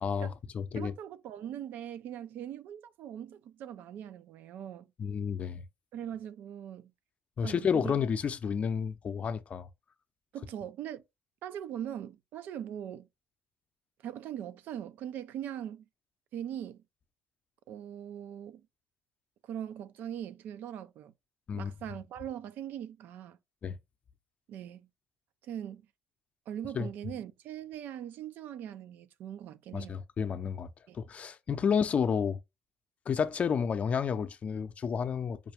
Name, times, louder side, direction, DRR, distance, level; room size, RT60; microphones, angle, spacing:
voice 1, 0.0-0.9 5.0-5.6 7.4-9.7 21.5-21.7 23.6-23.8 26.7-26.9 29.7-30.7 30.9-32.4 33.1-35.4, left 7 dB, 40° left, 0.6 m, -31 dB
voice 2, 0.7-4.9 5.9-6.9 7.4-7.9 10.3-11.0 11.4-13.1 14.0-15.8 16.3-16.8 17.7-18.7 19.4-21.1 21.5-23.4 24.5-24.9 25.4-25.8 26.5-30.0 30.9-31.0, right 10 dB, 65° right, 0.5 m, -41 dB
5.2 x 2.2 x 3.4 m
supercardioid pair, 80°, 3 cm